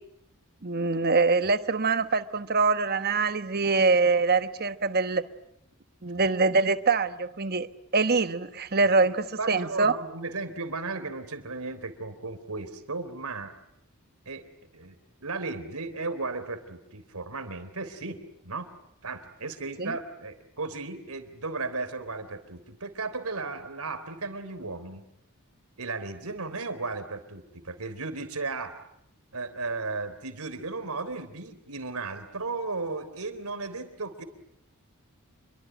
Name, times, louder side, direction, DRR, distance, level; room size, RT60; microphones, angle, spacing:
voice 1, 0.6-5.2 6.0-7.7 7.9-9.9 19.8-19.9, right 4 dB, 45° right, 11 dB, 1.2 m, -24 dB
voice 2, 9.4-13.5 14.3-14.4 14.7-18.7 19.0-25.0 25.8-28.8 29.3-34.2, right 3 dB, 80° right, 10 dB, 3.5 m, -35 dB
28.0 x 23.5 x 9.0 m, 0.78 s
head